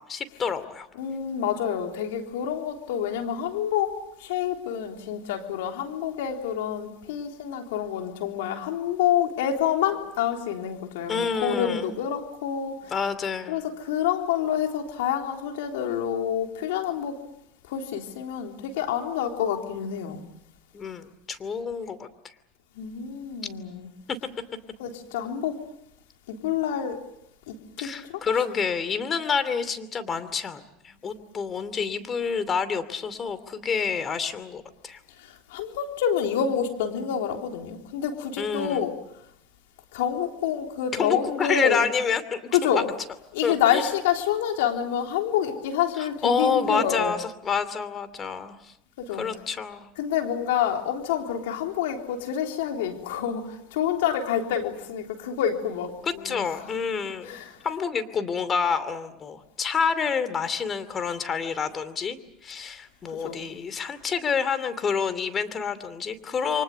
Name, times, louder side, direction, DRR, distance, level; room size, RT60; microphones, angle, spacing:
voice 1, 0.0-0.9 11.1-11.9 12.9-13.6 20.7-22.1 24.1-24.2 27.8-35.0 38.4-38.9 40.9-42.4 42.7-42.8 43.4-43.8 46.0-48.7 49.1-49.9 56.0-66.6, left 6 dB, 30° left, 2.7 m, -28 dB
voice 2, 1.0-12.9 13.5-17.2 17.7-20.2 22.8-23.9 24.8-25.6 26.3-27.0 27.5-27.6 27.8-28.4 35.2-38.9 39.9-41.9 42.5-42.9 43.3-47.1 49.0-49.3 50.0-56.5 57.2-57.6 63.1-63.5, left 9 dB, 75° left, 3.6 m, -28 dB
29.0 x 24.5 x 6.7 m
hypercardioid pair, 95°, 0 cm